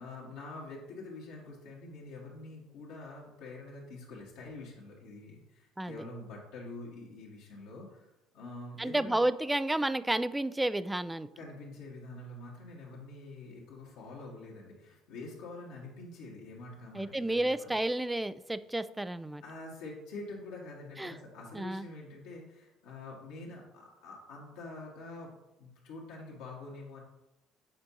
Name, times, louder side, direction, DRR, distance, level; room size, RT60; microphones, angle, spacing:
voice 1, 0.0-9.2 11.3-17.7 19.4-27.0, left 2 dB, 70° left, -4 dB, 1.6 m, -46 dB
voice 2, 8.8-11.3 16.9-19.4 21.0-21.1 21.5-21.9, right 1 dB, 10° right, 14 dB, 0.3 m, -31 dB
7.8 x 4.4 x 2.7 m, 0.96 s
hypercardioid pair, 60°, 0 cm